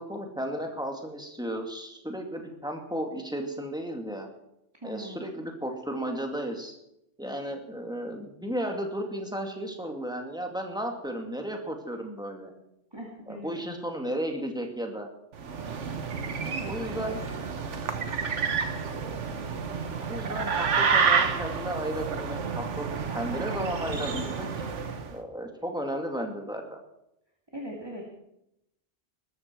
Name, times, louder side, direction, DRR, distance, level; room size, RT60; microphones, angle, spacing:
voice 1, 0.0-4.3 4.8-6.7 7.2-12.5 13.3-15.1 16.7-17.2 19.1-19.2 20.0-22.9 23.1-24.5 25.1-26.8, equal, 5° right, 2 dB, 2.4 m, -34 dB
voice 2, 4.8-5.2 12.9-13.5 16.4-17.2 27.5-28.1, right 1 dB, 20° right, -1 dB, 2.3 m, -40 dB
sound 1, 15.4-25.1, right 5 dB, 90° right, 1.6 m, -29 dB
20.5 x 13.5 x 4.6 m, 0.82 s
omnidirectional pair, 1.2 m